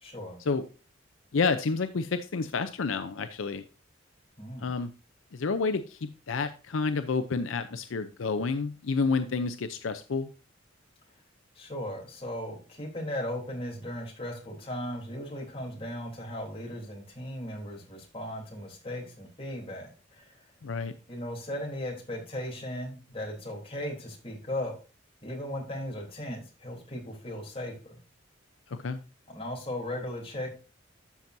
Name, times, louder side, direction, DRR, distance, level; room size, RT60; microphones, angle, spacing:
voice 1, 0.0-0.4 4.4-4.7 11.5-20.3 21.1-24.7 25.2-28.0 29.3-30.5, left 1 dB, 30° left, -1 dB, 3.3 m, -37 dB
voice 2, 1.3-3.6 4.6-4.9 5.3-10.3 20.6-20.9 28.7-29.0, left 4 dB, 75° left, 10 dB, 0.5 m, -29 dB
12.5 x 6.0 x 2.6 m, 0.34 s
head